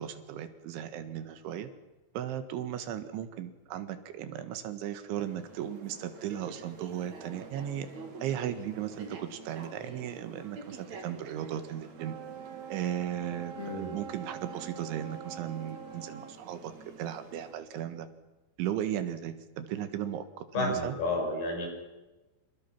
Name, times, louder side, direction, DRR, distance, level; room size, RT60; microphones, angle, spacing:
voice 1, 0.0-1.7 2.2-7.9 8.2-12.2 12.7-16.7 17.0-18.1 18.6-21.0, right 10 dB, 85° right, 10 dB, 4.0 m, -36 dB
sound 1, 5.2-17.5, right 4 dB, 45° right, 3.6 m, -48 dB
sound 2, 12.0-16.4, right 7 dB, 60° right, 2.0 m, -44 dB
voice 2, 13.6-13.9 20.5-21.7, left 2 dB, 60° left, 2 dB, 8.0 m, -31 dB
28.0 x 27.5 x 6.0 m, 1.1 s
omnidirectional pair, 5.3 m